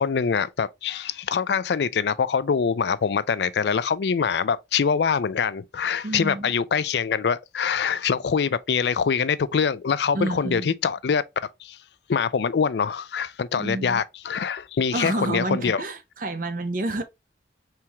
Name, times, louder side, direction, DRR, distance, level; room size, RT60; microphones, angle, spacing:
voice 1, 0.0-11.2 11.6-11.8 12.1-15.8, left 6 dB, 70° left, 0.4 m, -24 dB
voice 2, 6.0-6.5 10.1-10.7 13.5-14.0 14.9-17.0, right 2 dB, 50° right, 0.6 m, -29 dB
4.4 x 3.5 x 2.8 m
head